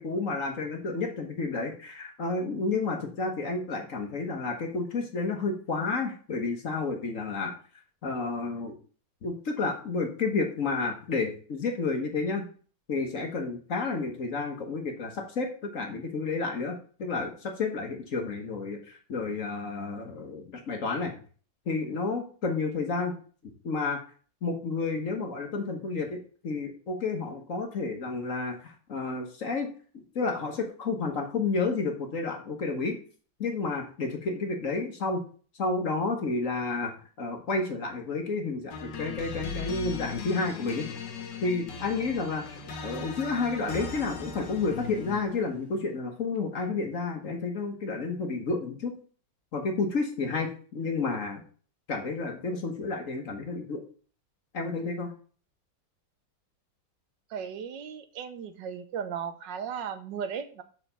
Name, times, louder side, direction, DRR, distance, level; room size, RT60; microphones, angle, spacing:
voice 1, 0.0-7.5 8.0-8.7 9.2-12.5 12.9-21.1 21.7-23.1 23.6-24.0 24.4-29.7 29.9-33.0 33.4-35.2 35.6-40.9 41.4-42.5 42.8-48.9 49.5-51.4 51.9-53.8 54.5-55.1, left 3 dB, 45° left, 3 dB, 1.4 m, -31 dB
sound 1, 38.7-45.4, left 5 dB, 65° left, 1.8 m, -38 dB
voice 2, 57.3-60.6, right 7 dB, 70° right, 9 dB, 1.4 m, -36 dB
6.6 x 5.0 x 5.5 m, 0.42 s
omnidirectional pair, 2.1 m